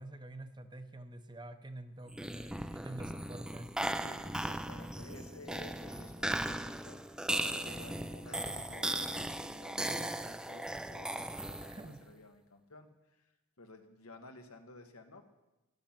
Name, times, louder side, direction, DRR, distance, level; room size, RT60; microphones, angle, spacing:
voice 1, 0.0-3.7 11.7-12.0, right 1 dB, 20° right, 9 dB, 0.8 m, -47 dB
sound 1, 2.1-12.0, right 1 dB, 5° right, 0.4 m, -37 dB
voice 2, 3.9-12.9 13.2-13.3 13.6-15.2, left 2 dB, 85° left, 5 dB, 1.5 m, -53 dB
13.5 x 12.0 x 6.0 m, 1.0 s
head